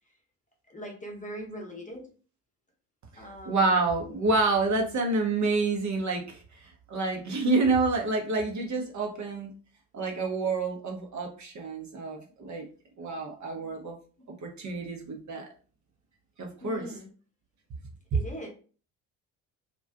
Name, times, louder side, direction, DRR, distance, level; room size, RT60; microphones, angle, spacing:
voice 1, 0.7-2.1 3.2-3.7 4.7-5.0 16.6-17.1 18.1-18.5, equal, 15° left, 0 dB, 0.8 m, -41 dB
voice 2, 3.1-9.5 9.9-12.6 13.0-14.0 14.4-15.5 16.4-16.9, right 3 dB, 40° right, 2 dB, 0.7 m, -28 dB
2.4 x 2.2 x 2.3 m, 0.39 s
hypercardioid pair, 50°, 48 cm